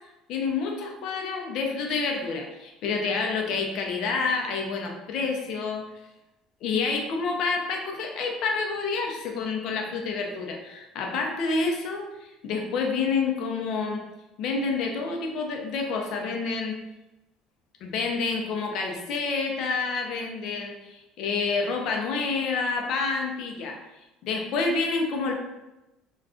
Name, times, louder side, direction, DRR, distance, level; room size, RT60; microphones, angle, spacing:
voice 1, 0.3-5.8 6.6-14.0 14.4-16.8 17.8-23.8 24.2-25.3, left 4 dB, 55° left, 2 dB, 0.5 m, -28 dB
2.4 x 2.2 x 3.6 m, 0.98 s
cardioid pair, 145°, 0 cm